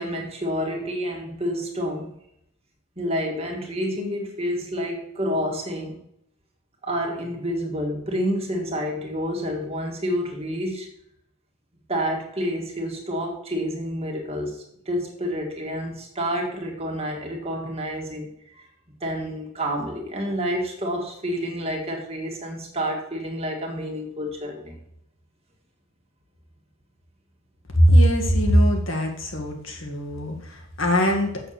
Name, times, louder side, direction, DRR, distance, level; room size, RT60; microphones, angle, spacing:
voice 1, 0.0-2.1 3.0-6.0 6.8-10.9 11.9-18.3 18.6-18.7 19.0-24.8, equal, 25° right, 0 dB, 2.0 m, -29 dB
voice 2, 27.7-31.4, equal, 60° left, 2 dB, 2.0 m, -20 dB
7.4 x 6.8 x 6.7 m, 0.74 s
head